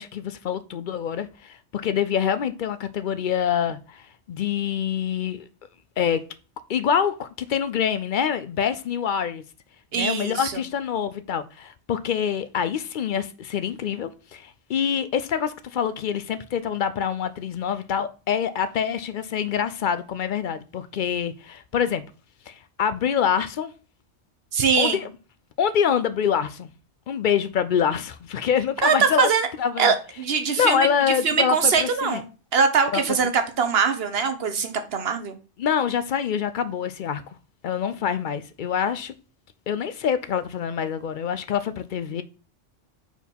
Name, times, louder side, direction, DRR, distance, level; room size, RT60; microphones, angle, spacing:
voice 1, 0.0-5.5 6.0-6.2 6.7-9.4 9.9-22.0 22.5-23.7 24.8-25.1 25.6-26.7 27.1-29.3 29.6-29.9 30.6-32.2 32.9-33.0 35.6-37.2 37.6-39.1 39.7-42.2, left 8 dB, 60° left, 0.5 m, -25 dB
voice 2, 9.9-10.6 24.5-25.0 28.8-29.5 29.8-32.3 32.5-35.4, right 6 dB, 60° right, 1.1 m, -22 dB
4.6 x 4.5 x 5.2 m
omnidirectional pair, 1.2 m